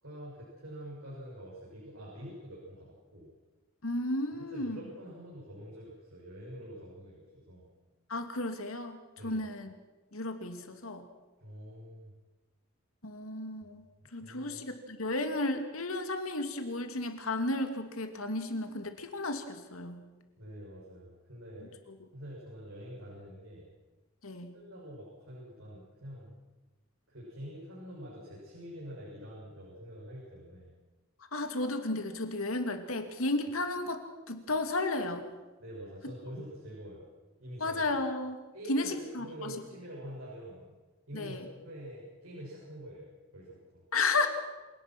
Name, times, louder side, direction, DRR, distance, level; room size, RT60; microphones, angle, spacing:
voice 1, 0.0-3.3 4.5-7.7 9.2-9.4 11.4-12.1 14.2-14.6 20.4-21.8 22.1-23.7 24.5-26.4 27.1-30.7 35.6-37.1 37.4-37.8 38.5-40.8 41.1-43.1 43.3-43.8, equal, 75° right, -4 dB, 7.1 m, -46 dB
voice 2, 3.8-4.8 8.1-9.0 9.2-9.7 10.1-11.1 13.0-13.8 14.1-20.0 24.2-24.5 31.3-35.2 37.6-38.4 38.7-39.5 41.1-41.4 43.9-44.3, left 2 dB, 90° left, 6 dB, 2.7 m, -33 dB
27.5 x 18.5 x 6.2 m, 1.2 s
head